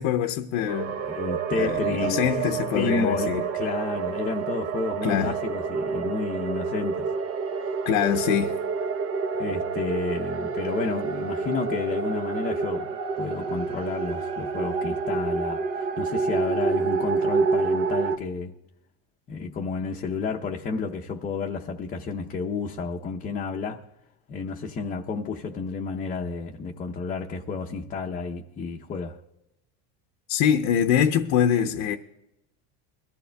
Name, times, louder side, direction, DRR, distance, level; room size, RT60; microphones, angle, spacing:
voice 1, 0.0-1.0 1.5-3.4 5.0-5.3 7.8-8.6 30.3-32.0, left 9 dB, 65° left, 0.8 m, -24 dB
sound 1, 0.7-18.2, right 5 dB, 45° right, 0.9 m, -28 dB
voice 2, 1.0-2.3 2.7-7.1 9.4-18.5 19.3-23.8 24.3-29.2, left 4 dB, 25° left, 0.7 m, -31 dB
22.5 x 14.0 x 2.3 m
cardioid pair, 140°, 32 cm